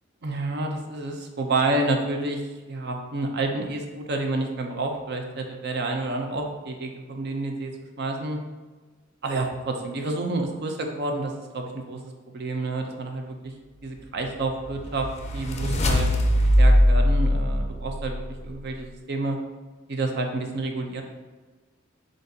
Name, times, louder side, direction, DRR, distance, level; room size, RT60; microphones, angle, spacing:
voice 1, 0.2-2.4 2.7-7.7 8.0-8.4 9.2-12.0 12.3-13.5 13.8-15.1 15.3-16.1 16.6-19.4 19.9-21.0, right 2 dB, 55° right, 3 dB, 0.6 m, -29 dB
sound 1, 14.3-18.6, equal, 30° left, 0.4 m, -21 dB
7.6 x 2.6 x 2.7 m, 1.3 s
head